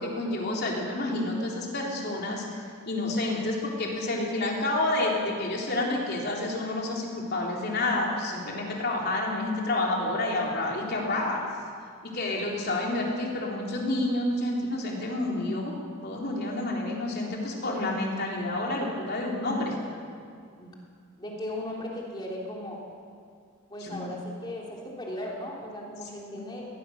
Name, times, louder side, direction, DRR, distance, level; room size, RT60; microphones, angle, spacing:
voice 1, 0.0-2.4 2.9-11.4 12.0-15.7 16.0-19.7 23.8-24.1, left 2 dB, 45° left, -2 dB, 3.8 m, -29 dB
voice 2, 21.2-22.8 23.7-26.7, left 1 dB, 20° left, -2 dB, 3.4 m, -37 dB
20.0 x 20.0 x 6.6 m, 2.2 s
head